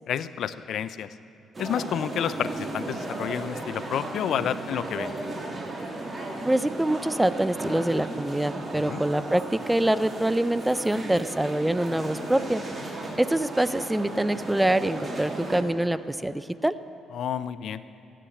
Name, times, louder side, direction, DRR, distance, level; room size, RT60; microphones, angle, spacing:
voice 1, 0.1-1.1 1.6-5.2 8.8-9.0 17.1-17.8, left 9 dB, 70° left, 14 dB, 0.5 m, -30 dB
sound 1, 1.5-15.6, right 2 dB, 30° right, 2.3 m, -35 dB
voice 2, 6.4-16.8, right 1 dB, 10° right, 15 dB, 0.5 m, -25 dB
14.0 x 10.0 x 8.7 m, 2.8 s
cardioid pair, 90°, 0 cm